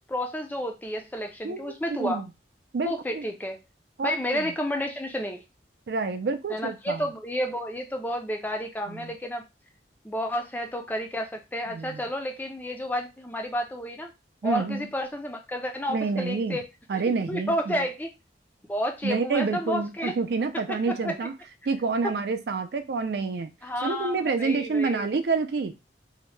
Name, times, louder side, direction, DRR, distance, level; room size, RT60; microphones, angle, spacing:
voice 1, 0.0-2.2 2.9-3.6 4.0-5.4 6.5-9.4 10.0-14.1 14.4-16.6 17.3-18.1 18.7-20.1 20.9-21.1 23.6-25.1, equal, 10° left, 0.3 m, -31 dB
voice 2, 1.4-2.3 2.7-3.3 4.0-4.5 5.9-7.1 8.9-9.1 11.7-12.0 14.4-14.9 15.9-16.6 16.9-17.9 19.0-21.3 21.7-23.5 23.8-25.7, right 4 dB, 65° right, 0.4 m, -28 dB
2.7 x 2.1 x 3.1 m
head